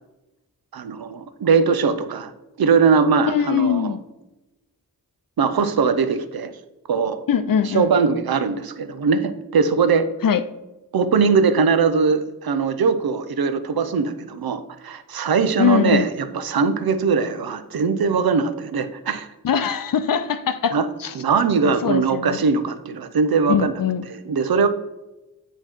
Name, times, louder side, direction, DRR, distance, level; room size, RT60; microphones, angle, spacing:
voice 1, 0.7-2.3 2.6-4.0 5.4-6.5 6.9-7.2 7.6-10.1 10.9-19.3 20.7-20.9 21.1-23.7 24.1-24.7, right 5 dB, 85° right, 10 dB, 0.6 m, -20 dB
voice 2, 3.3-4.0 7.3-7.9 10.2-10.4 15.6-16.1 19.4-21.2 21.6-22.4 23.5-24.1, left 7 dB, 70° left, 11 dB, 0.6 m, -21 dB
8.8 x 3.0 x 4.4 m, 1.0 s
wide cardioid pair, 80°, 35 cm